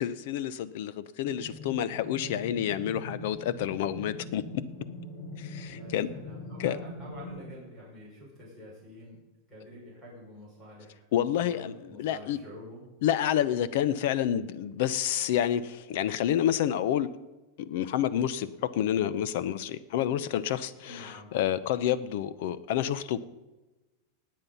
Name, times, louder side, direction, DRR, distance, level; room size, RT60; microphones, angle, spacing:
voice 1, 0.0-4.6 5.4-6.1 6.6-6.8 11.1-11.7 12.0-12.4 13.0-17.1 17.6-23.3, left 10 dB, 55° left, 16 dB, 0.8 m, -29 dB
sound 1, 1.2-7.5, left 1 dB, 90° left, 3.3 m, -42 dB
voice 2, 5.7-9.2 9.5-12.8 20.8-21.3, left 1 dB, 5° left, -6 dB, 5.9 m, -48 dB
19.5 x 7.6 x 5.6 m, 1.1 s
supercardioid pair, 165°, 0 cm